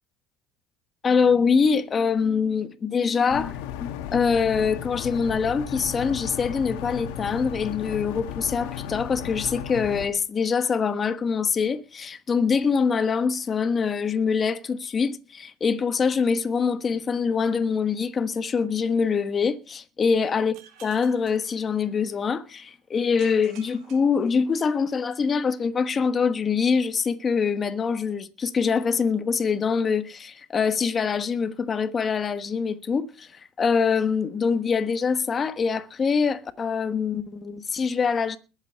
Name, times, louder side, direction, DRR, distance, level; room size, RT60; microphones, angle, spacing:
voice 1, 1.0-20.5 20.8-38.4, left 5 dB, 25° left, 1.2 m, -24 dB
sound 1, 3.3-10.1, left 10 dB, 75° left, 1.9 m, -35 dB
sound 2, 20.5-22.3 23.2-25.0, right 8 dB, 55° right, 3.6 m, -52 dB
21.0 x 8.3 x 4.5 m
cardioid pair, 145°, 0 cm